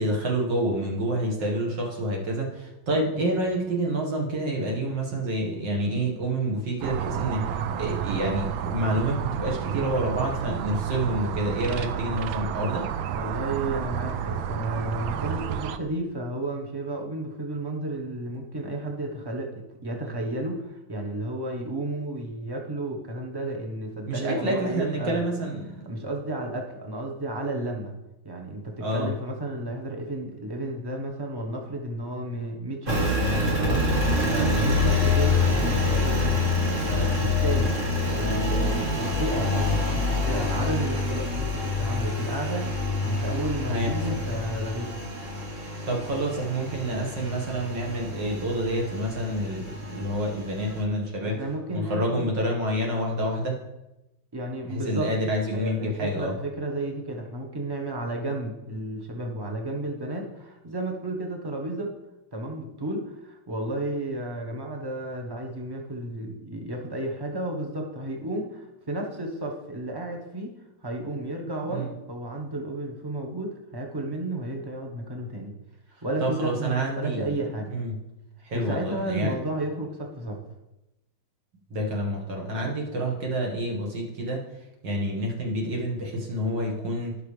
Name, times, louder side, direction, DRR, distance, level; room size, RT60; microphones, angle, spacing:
voice 1, 0.0-12.9 24.1-25.9 28.8-29.1 34.2-34.4 43.7-44.2 45.9-53.6 54.7-56.3 71.7-71.9 76.2-77.4 77.7-78.0 78.4-79.3 81.7-84.4 84.8-87.2, right 1 dB, 60° right, -1 dB, 2.2 m, -28 dB
sound 1, 6.8-15.8, right 9 dB, 75° right, 1.3 m, -30 dB
voice 2, 13.1-25.2 25.8-27.9 28.2-33.1 33.6-37.7 38.2-42.7 43.0-44.9 51.3-52.3 54.3-55.1 55.5-61.9 62.3-70.5 70.8-75.5 76.0-77.7 78.5-80.4, right 1 dB, 15° right, 1 dB, 0.8 m, -32 dB
Engine, 32.9-50.8, left 2 dB, 40° right, 1.7 m, -26 dB
17.0 x 5.7 x 3.3 m, 0.96 s
omnidirectional pair, 2.3 m